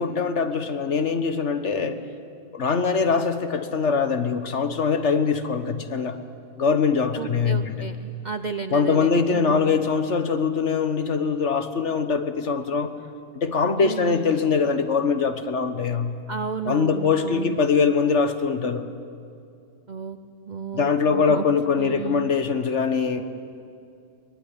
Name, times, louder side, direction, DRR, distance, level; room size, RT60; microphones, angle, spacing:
voice 1, 0.0-2.0 2.5-6.2 6.6-7.7 8.7-12.9 13.3-16.1 16.6-18.9 20.7-23.2, left 5 dB, 45° left, 9 dB, 1.3 m, -23 dB
voice 2, 7.2-9.8 13.8-14.3 16.3-17.6 19.9-20.2 20.5-21.5 21.8-22.3, right 6 dB, 65° right, 10 dB, 0.4 m, -32 dB
23.5 x 20.0 x 9.9 m, 2.4 s
omnidirectional pair, 1.9 m